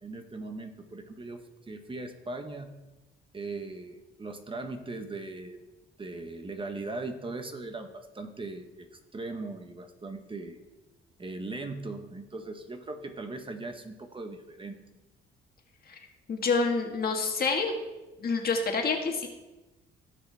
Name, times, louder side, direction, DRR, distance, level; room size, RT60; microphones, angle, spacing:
voice 1, 0.0-2.8 3.3-5.6 6.0-10.6 11.2-14.8, right 3 dB, 25° right, 6 dB, 1.1 m, -39 dB
voice 2, 16.3-17.7 18.2-19.3, left 4 dB, 50° left, 3 dB, 1.7 m, -27 dB
16.5 x 5.8 x 3.5 m, 1.1 s
cardioid pair, 90°, 20 cm